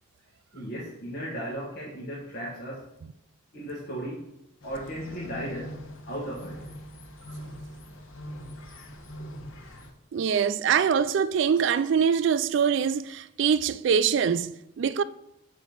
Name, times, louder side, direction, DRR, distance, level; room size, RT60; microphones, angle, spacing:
voice 1, 0.5-2.9 3.5-4.3 4.6-6.7, right 1 dB, 45° left, 1.6 m, -36 dB
sound 1, 4.6-9.9, equal, 70° left, 1.2 m, -42 dB
voice 2, 10.1-15.0, right 7 dB, 60° right, 0.3 m, -24 dB
6.6 x 5.1 x 6.5 m
head